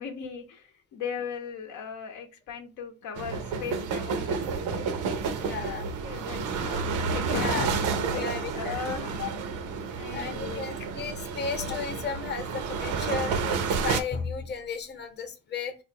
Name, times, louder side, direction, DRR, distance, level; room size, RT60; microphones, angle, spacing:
voice 1, 0.0-4.4 4.7-4.9 6.0-9.3 10.0-10.7 13.2-13.4, left 6 dB, 90° left, 5 dB, 0.7 m, -37 dB
sound 1, 3.1-14.0, right 5 dB, 90° right, 0.6 m, -30 dB
voice 2, 5.4-5.9 7.3-7.7 8.1-8.9 9.2-9.3 10.1-15.7, left 5 dB, 35° left, 8 dB, 0.7 m, -34 dB
4.3 x 2.4 x 2.8 m, 0.32 s
cardioid pair, 90°, 30 cm